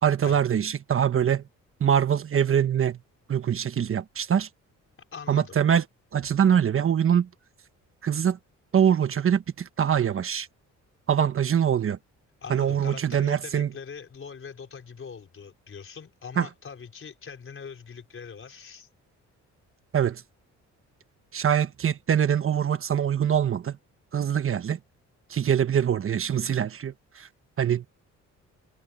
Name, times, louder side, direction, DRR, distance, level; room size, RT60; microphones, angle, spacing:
voice 1, 0.0-1.4 1.8-3.0 3.3-4.5 5.3-5.8 6.1-7.3 8.0-8.4 8.7-10.5 11.1-12.0 12.5-13.7 16.4-16.5 19.9-20.2 21.3-23.8 24.1-24.8 25.3-27.3 27.6-27.9, right 8 dB, 45° right, 1.2 m, -23 dB
voice 2, 5.1-5.6 12.4-18.9, left 6 dB, 45° left, 4.7 m, -42 dB
cardioid pair, 90°, 30 cm